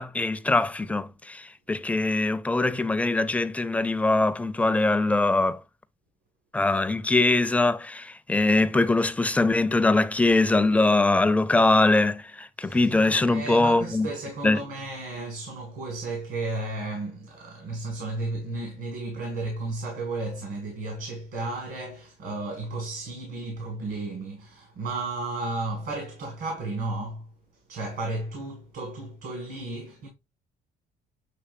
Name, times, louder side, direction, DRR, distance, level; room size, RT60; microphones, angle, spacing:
voice 1, 0.0-5.6 6.5-14.1 14.4-14.6, left 2 dB, 10° left, 0.4 m, -22 dB
voice 2, 12.6-12.9 13.2-27.3 27.7-30.1, right 2 dB, 70° right, 1.7 m, -33 dB
6.8 x 3.1 x 2.4 m
cardioid pair, 110°, 17 cm